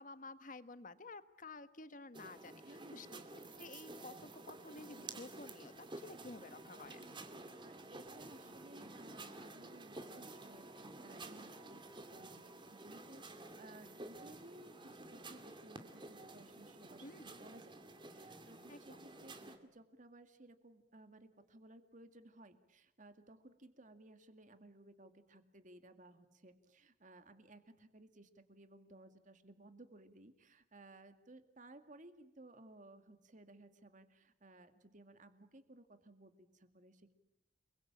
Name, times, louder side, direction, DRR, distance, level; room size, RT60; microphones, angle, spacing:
voice 1, 0.0-7.1 17.0-17.3 18.7-19.0, left 3 dB, 45° left, 13 dB, 1.3 m, -52 dB
sound 1, 2.1-19.6, right 2 dB, 25° right, 2.5 m, -52 dB
voice 2, 2.6-3.3 7.3-37.1, right 2 dB, 45° right, 9 dB, 2.2 m, -59 dB
30.0 x 22.0 x 8.8 m, 0.84 s
head